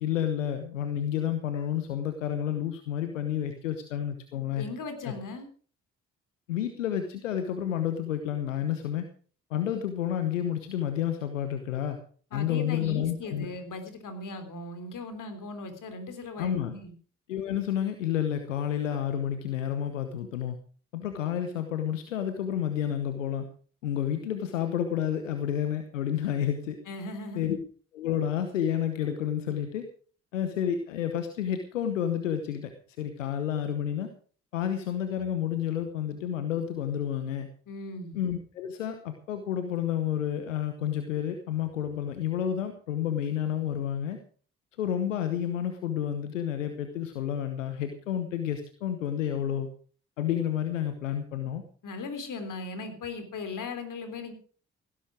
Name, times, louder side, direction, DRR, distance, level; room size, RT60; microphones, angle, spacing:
voice 1, 0.0-4.6 5.0-5.1 6.5-9.1 9.5-12.0 12.3-13.5 16.4-16.7 17.3-20.6 20.9-23.5 23.8-26.8 27.3-27.6 27.9-29.9 30.3-32.7 33.0-34.1 34.5-37.5 38.1-44.2 44.8-49.7 50.2-51.6, left 10 dB, 85° left, 8 dB, 1.1 m, -30 dB
voice 2, 4.6-5.5 12.3-16.9 26.9-27.5 37.7-38.2 51.8-54.3, left 3 dB, 55° left, 8 dB, 3.7 m, -38 dB
17.0 x 11.0 x 4.9 m, 0.43 s
figure-of-eight pair, 40°, 37 cm